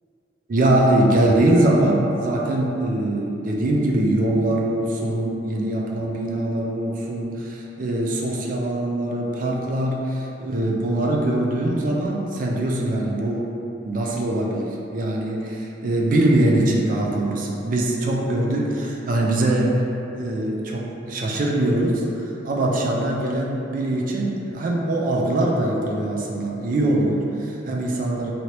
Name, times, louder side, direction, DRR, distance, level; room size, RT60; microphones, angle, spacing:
voice 1, 0.5-13.5 13.8-19.7 20.1-28.3, right 1 dB, 45° right, -1 dB, 0.3 m, -22 dB
3.1 x 2.7 x 2.8 m, 2.9 s
head